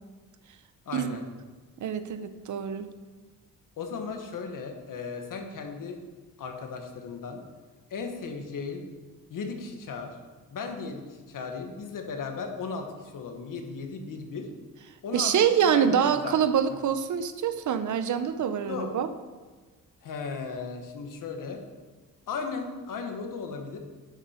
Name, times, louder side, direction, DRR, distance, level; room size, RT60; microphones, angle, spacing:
voice 1, 0.8-1.2 3.8-6.0 6.4-7.4 7.9-8.8 9.3-10.2 10.5-14.5 15.0-15.3 15.7-16.4 18.6-19.1 20.0-21.6 22.3-23.8, left 5 dB, 65° left, 4 dB, 1.5 m, -36 dB
voice 2, 1.8-2.9 15.1-19.1, right 8 dB, 55° right, 11 dB, 0.7 m, -25 dB
10.5 x 8.4 x 4.5 m, 1.3 s
wide cardioid pair, 150°, 35 cm